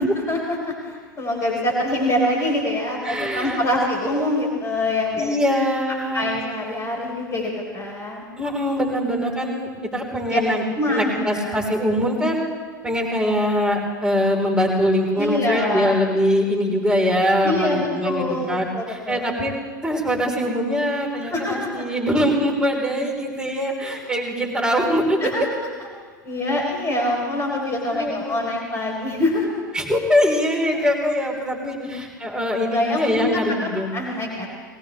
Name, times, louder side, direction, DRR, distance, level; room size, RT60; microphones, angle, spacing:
voice 1, 0.0-5.6 6.1-8.2 10.3-10.4 10.7-11.6 15.1-16.0 17.4-19.2 21.3-21.9 23.9-24.1 25.2-25.5 26.2-29.6 31.8-31.9 32.7-34.5, left 1 dB, 25° left, -1 dB, 4.1 m, -25 dB
voice 2, 3.0-3.6 5.2-6.3 8.4-10.6 10.9-12.4 12.8-19.5 19.8-25.2 27.9-28.6 29.7-33.9, equal, 10° right, -2 dB, 4.3 m, -22 dB
20.5 x 18.0 x 3.5 m, 1.5 s
figure-of-eight pair, 85°, 11 cm